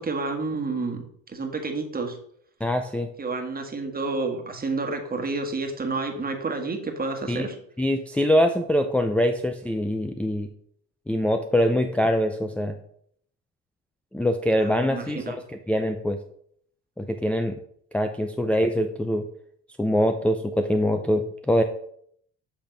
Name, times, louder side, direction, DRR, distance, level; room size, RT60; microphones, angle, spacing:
voice 1, 0.0-2.2 3.2-7.5 14.6-15.3, right 3 dB, 30° right, 4 dB, 1.5 m, -30 dB
voice 2, 2.6-3.1 7.3-7.5 7.8-10.5 11.1-12.8 14.1-15.4 15.7-16.2 17.0-17.6 17.9-19.3 19.8-21.6, equal, 5° left, 4 dB, 0.5 m, -23 dB
7.8 x 3.5 x 5.1 m, 0.66 s
supercardioid pair, 80°, 31 cm